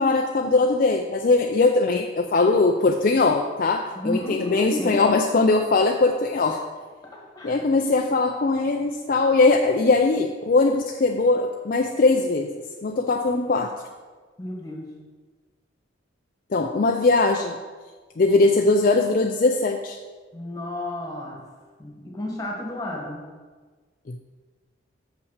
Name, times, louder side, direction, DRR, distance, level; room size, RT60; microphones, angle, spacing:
voice 1, 0.0-6.6 7.4-12.5 12.8-13.7 16.5-17.6 18.2-20.0 24.1-24.2, left 3 dB, 45° left, 4 dB, 0.4 m, -20 dB
voice 2, 3.9-5.2 7.3-7.6 14.4-14.9 20.3-21.4 21.8-23.3, left 2 dB, 20° left, -1 dB, 1.5 m, -31 dB
6.7 x 5.7 x 6.5 m, 1.4 s
head